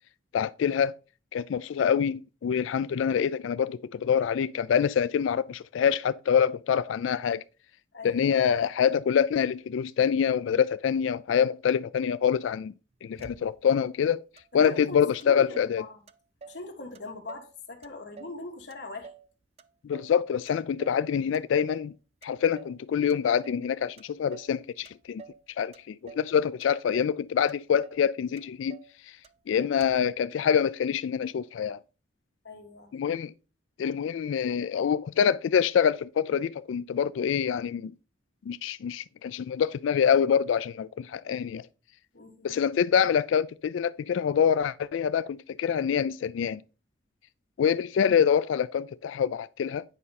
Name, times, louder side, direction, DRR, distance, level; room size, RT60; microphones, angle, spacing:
voice 1, 0.3-0.9 1.3-7.4 8.0-12.7 13.0-14.2 14.5-15.8 19.8-21.9 22.2-25.2 25.6-28.8 29.5-31.8 32.9-33.3 33.8-37.9 38.5-41.7 42.4-46.6 47.6-49.8, left 7 dB, 80° left, 0.3 m, -25 dB
voice 2, 7.9-8.4 14.5-16.0 16.5-19.1 32.4-32.9 42.1-42.6, left 3 dB, 60° left, 1.9 m, -41 dB
Motor vehicle (road), 13.2-13.8 14.4-14.5 14.7-15.8 16.1-16.7 16.9-17.5 17.8-19.3 19.6-20.2 20.5-21.0 21.3-21.9 22.2-22.8 23.1-23.7 24.0-24.6 24.8-25.4 25.7-26.3 26.6-27.2 27.5-27.6 27.8-28.1 28.4-28.9 29.2-29.3 29.6-30.1, right 5 dB, 30° right, 0.4 m, -49 dB
9.7 x 5.3 x 4.2 m
head